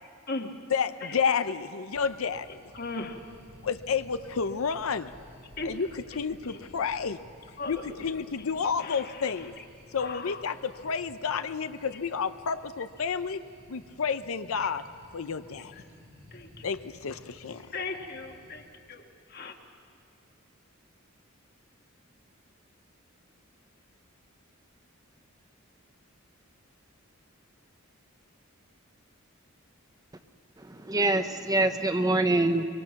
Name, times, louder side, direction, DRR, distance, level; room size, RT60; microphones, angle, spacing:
voice 1, 0.7-2.6 3.6-5.1 5.6-7.2 7.7-9.5 9.9-13.4 13.7-15.7 16.6-17.7, left 6 dB, 85° left, 11 dB, 0.6 m, -30 dB
sound 1, 1.9-18.7, equal, 75° right, 5.9 m, -54 dB
voice 2, 2.7-3.2 5.6-5.7 6.5-6.6 7.6-8.1 8.8-9.4 10.0-10.4 15.6-15.7 16.3-16.6 17.7-19.5, left 3 dB, 45° left, 3 dB, 1.6 m, -38 dB
voice 3, 30.6-32.6, right 2 dB, 15° right, 7 dB, 0.8 m, -25 dB
24.0 x 24.0 x 5.9 m, 2.4 s
head